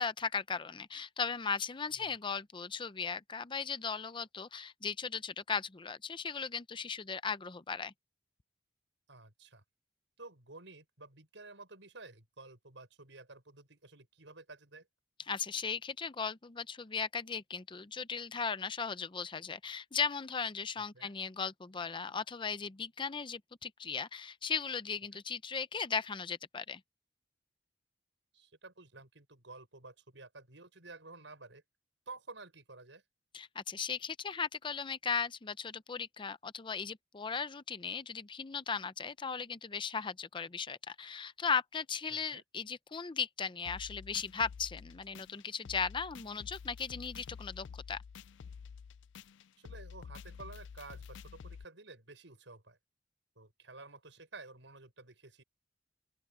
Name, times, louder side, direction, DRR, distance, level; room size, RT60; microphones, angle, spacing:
voice 1, 0.0-7.9 15.3-26.8 33.3-48.0, left 5 dB, 25° left, 0.6 m, -37 dB
voice 2, 9.1-9.6 10.2-14.9 20.9-21.1 25.1-25.2 28.3-31.6 32.1-33.0 42.3-42.4 49.6-52.8 53.4-55.4, right 3 dB, 80° right, 6.3 m, -52 dB
sound 1, 43.7-51.6, left 6 dB, 75° left, 0.4 m, -49 dB
open air
head